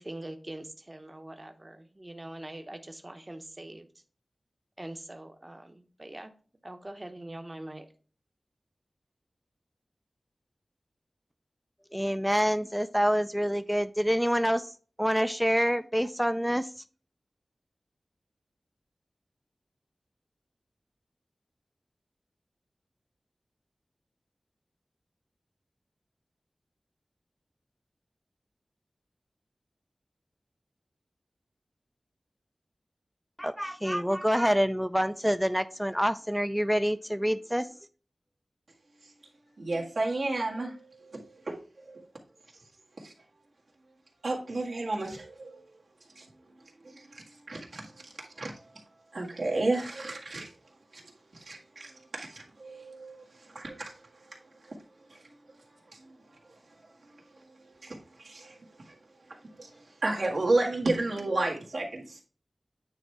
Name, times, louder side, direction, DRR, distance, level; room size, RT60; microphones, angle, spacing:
voice 1, 0.0-3.9 4.8-6.3 6.6-7.9, right 1 dB, 30° right, 6 dB, 0.8 m, -43 dB
voice 2, 11.9-14.7 15.0-16.7 33.4-37.7, equal, 5° right, 10 dB, 0.4 m, -27 dB
voice 3, 39.6-40.8 41.1-41.6 41.9-42.0 43.0-43.1 44.2-45.6 46.2-46.3 47.5-47.9 48.2-48.5 49.1-50.5 50.9-51.0 51.3-53.2 53.5-53.9 57.8-58.0 58.2-58.5 59.6-59.7 60.0-62.2, right 2 dB, 85° right, -2 dB, 1.7 m, -31 dB
9.1 x 3.2 x 4.5 m, 0.39 s
wide cardioid pair, 70°, 0 cm